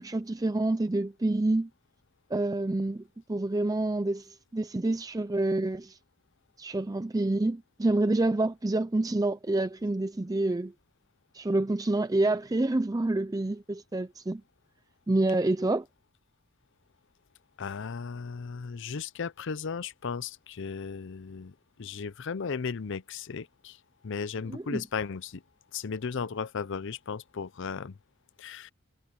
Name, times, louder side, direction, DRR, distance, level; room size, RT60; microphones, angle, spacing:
voice 1, 0.0-1.7 2.3-3.0 3.3-6.0 6.6-10.7 11.3-14.4 15.1-15.9 24.5-24.8, right 2 dB, 15° right, 0.4 m, -27 dB
voice 2, 17.6-23.8 24.0-25.4 25.7-28.0 28.4-28.7, left 5 dB, 60° left, 0.6 m, -35 dB
head